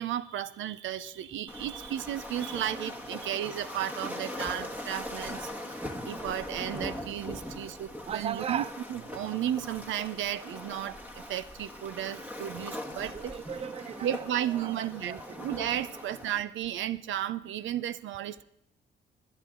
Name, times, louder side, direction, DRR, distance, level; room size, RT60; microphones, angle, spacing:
voice 1, 0.0-13.3 14.0-18.4, right 11 dB, 75° right, 16 dB, 0.6 m, -34 dB
Waves surf, 1.5-16.4, left 1 dB, 10° right, 1.6 m, -41 dB
voice 2, 8.1-8.7 13.1-14.1 14.6-15.2, right 8 dB, 30° right, 18 dB, 0.4 m, -36 dB
20.5 x 9.4 x 3.8 m, 0.79 s
cardioid pair, 90°, 20 cm